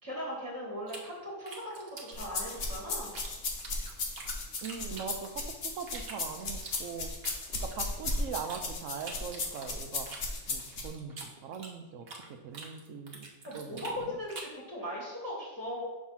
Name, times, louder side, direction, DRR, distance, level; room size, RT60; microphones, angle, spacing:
voice 1, 0.0-3.1 13.4-15.8, equal, 15° right, -5 dB, 2.0 m, -39 dB
sound 1, 0.9-3.3 3.6-5.5 5.9-8.6 9.0-12.3 12.5-14.6, right 3 dB, 55° right, 1.2 m, -46 dB
sound 2, 2.1-10.9, left 3 dB, 55° left, 1.1 m, -35 dB
voice 2, 4.6-7.1 7.6-10.1 10.5-14.2, right 6 dB, 85° right, 7 dB, 1.1 m, -41 dB
6.3 x 3.5 x 5.6 m, 1.1 s
omnidirectional pair, 1.3 m